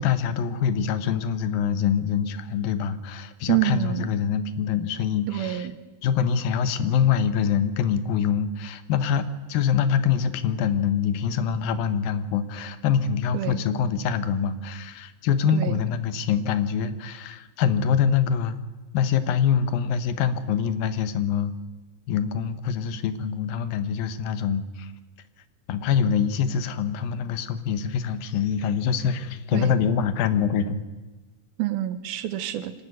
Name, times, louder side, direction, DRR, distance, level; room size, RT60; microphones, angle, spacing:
voice 1, 0.0-5.7 6.0-18.6 18.9-21.5 22.1-24.9 25.7-30.9, left 7 dB, 80° left, 12 dB, 2.8 m, -25 dB
voice 2, 3.5-4.1 5.3-5.8 13.3-13.6 15.5-15.8 29.5-29.7 31.6-32.7, right 13 dB, 90° right, 12 dB, 3.0 m, -27 dB
25.0 x 12.5 x 9.4 m, 1.2 s
omnidirectional pair, 4.2 m